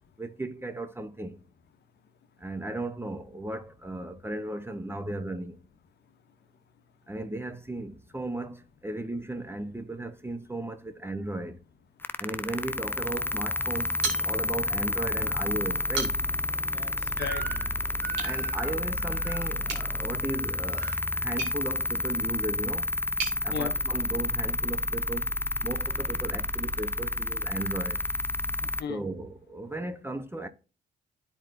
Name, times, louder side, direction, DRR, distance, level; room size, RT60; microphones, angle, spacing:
voice 1, 0.2-1.4 2.4-5.6 7.1-11.6 12.2-16.2 18.2-22.9 23.4-25.3 25.6-28.0 28.9-30.5, right 2 dB, 10° right, 0.9 m, -36 dB
sound 1, 12.0-28.8, left 2 dB, 10° left, 0.4 m, -30 dB
sound 2, 14.0-14.8 15.1-15.2 15.7-16.5 18.1-18.4 19.6-23.4, right 4 dB, 85° right, 2.3 m, -37 dB
voice 2, 16.7-18.2 23.5-23.7 28.6-29.0, left 8 dB, 60° left, 0.8 m, -38 dB
Crying sobbing / Screech, 17.2-17.7 18.0-19.5 20.3-21.0, right 8 dB, 55° right, 0.8 m, -40 dB
12.0 x 4.5 x 2.6 m
supercardioid pair, 60°, 19 cm